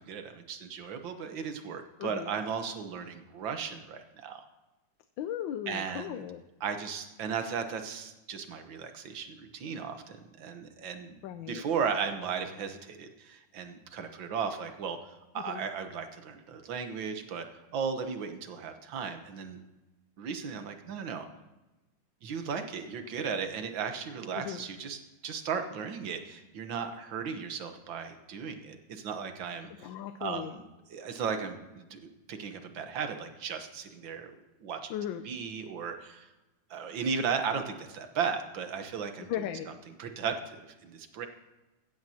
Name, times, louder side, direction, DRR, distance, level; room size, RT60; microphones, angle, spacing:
voice 1, 0.0-4.5 5.7-6.3 6.6-17.5 17.7-19.6 20.2-21.3 22.2-29.9 30.2-32.0 32.3-34.4 34.6-34.9 35.2-36.3 36.7-39.3 40.0-41.3, right 6 dB, 90° right, 7 dB, 1.9 m, -36 dB
voice 2, 2.0-2.3 5.2-6.4 11.2-11.6 15.5-15.6 24.3-24.7 29.8-30.6 34.9-35.2 39.3-39.7, left 10 dB, 90° left, 9 dB, 1.4 m, -36 dB
15.5 x 15.0 x 2.9 m, 1.1 s
omnidirectional pair, 2.0 m